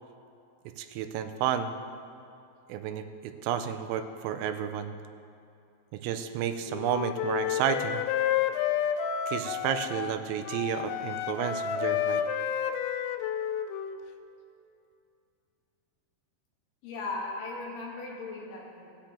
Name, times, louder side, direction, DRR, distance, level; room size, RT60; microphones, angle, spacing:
voice 1, 0.8-1.7 2.7-4.9 5.9-8.0 9.3-12.2, right 9 dB, 90° right, 8 dB, 3.2 m, -31 dB
Wind instrument woodwind instrument, 6.7-10.2 10.4-14.0, left 9 dB, 85° left, 3.2 m, -30 dB
voice 2, 16.8-19.0, left 3 dB, 70° left, -3 dB, 4.0 m, -37 dB
18.0 x 9.9 x 3.0 m, 2.6 s
omnidirectional pair, 5.7 m